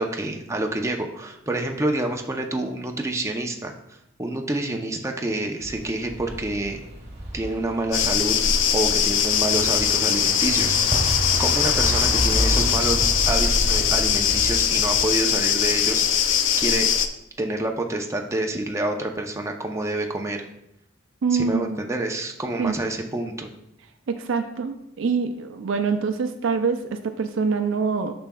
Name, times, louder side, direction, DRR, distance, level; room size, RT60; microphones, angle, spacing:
voice 1, 0.0-3.7 4.2-6.8 7.3-8.4 8.7-16.9 17.4-20.4 21.3-23.5, right 2 dB, 15° right, 3 dB, 0.6 m, -28 dB
sound 1, 5.6-15.1, equal, 35° right, 1.6 m, -30 dB
sound 2, 7.9-17.1, left 8 dB, 70° left, 0.5 m, -21 dB
voice 2, 21.2-21.8 22.6-22.8 24.1-28.1, right 5 dB, 70° right, 6 dB, 0.4 m, -25 dB
8.9 x 6.0 x 2.3 m, 0.80 s
head